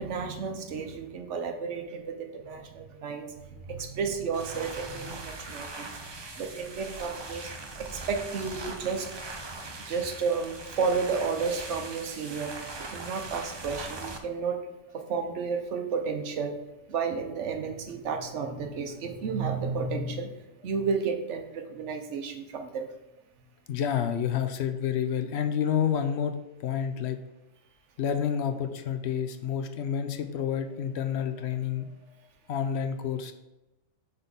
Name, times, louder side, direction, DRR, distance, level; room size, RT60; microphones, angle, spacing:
voice 1, 0.0-7.5 7.8-9.1 9.9-12.5 12.8-14.6 14.9-16.6 16.9-20.4 20.6-22.9, right 5 dB, 70° right, 5 dB, 1.1 m, -32 dB
sound 1, 4.3-14.2, right 3 dB, 45° right, 0.3 m, -40 dB
voice 2, 23.7-26.3 26.6-27.2 28.0-31.9 32.5-33.3, left 8 dB, 65° left, 8 dB, 0.8 m, -29 dB
6.0 x 4.0 x 5.2 m, 0.98 s
omnidirectional pair, 1.3 m